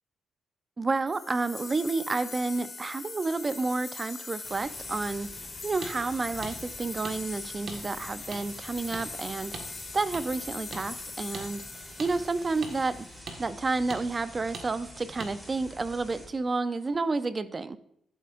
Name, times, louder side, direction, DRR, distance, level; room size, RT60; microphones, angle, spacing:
voice 1, 0.8-9.6 9.9-11.6 12.0-13.1 13.4-17.8, right 3 dB, 30° right, 0.5 m, -30 dB
sound 1, 1.1-13.1, left 4 dB, 40° left, 1.7 m, -42 dB
sound 2, 4.4-16.3, equal, 5° right, 3.4 m, -47 dB
sound 3, 5.8-5.9 6.4-6.5 7.0-7.2 7.7-7.8 8.3-8.4 8.9-9.1 9.5-9.7 10.1-10.2 10.7-10.8 11.3-11.5 12.0-12.1 12.6-12.7 13.3-13.4 13.9-14.0 14.5-14.7 15.2-15.3, right 4 dB, 60° right, 1.6 m, -39 dB
13.0 x 7.6 x 2.5 m
cardioid pair, 90°, 0 cm